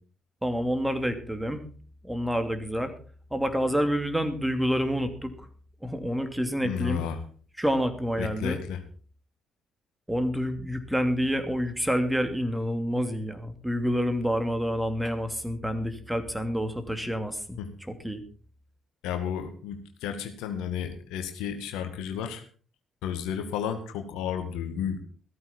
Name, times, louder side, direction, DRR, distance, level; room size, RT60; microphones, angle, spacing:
voice 1, 0.4-1.6 2.0-2.9 3.3-5.3 5.8-7.1 7.6-8.6 10.1-17.6 17.9-18.2, equal, 5° right, 8 dB, 2.8 m, -28 dB
voice 2, 6.6-7.2 8.2-8.8 17.6-17.7 19.0-22.4 23.0-25.0, left 8 dB, 70° left, 7 dB, 1.8 m, -32 dB
15.5 x 13.5 x 4.4 m, 0.40 s
hypercardioid pair, 45°, 0 cm